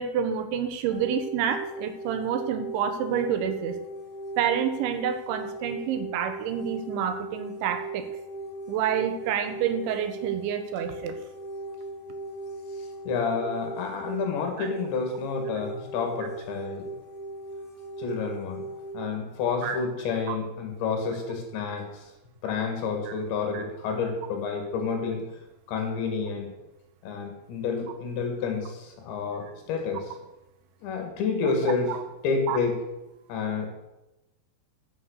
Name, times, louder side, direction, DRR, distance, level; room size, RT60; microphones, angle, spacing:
voice 1, 0.0-3.8 4.4-8.0 8.7-11.2 14.6-14.7 19.6-19.8 23.1-23.2 23.5-23.6 31.6-32.0 32.5-32.6, right 8 dB, 80° right, 9 dB, 3.4 m, -28 dB
sound 1, 0.9-18.9, right 2 dB, 45° left, 4.3 m, -38 dB
voice 2, 13.1-16.9 18.0-18.6 18.9-22.0 22.4-25.2 25.7-26.5 27.0-30.1 30.8-31.9 32.2-32.8 33.3-33.7, left 5 dB, 75° left, 3 dB, 4.3 m, -29 dB
13.0 x 6.4 x 6.6 m, 0.95 s
omnidirectional pair, 5.3 m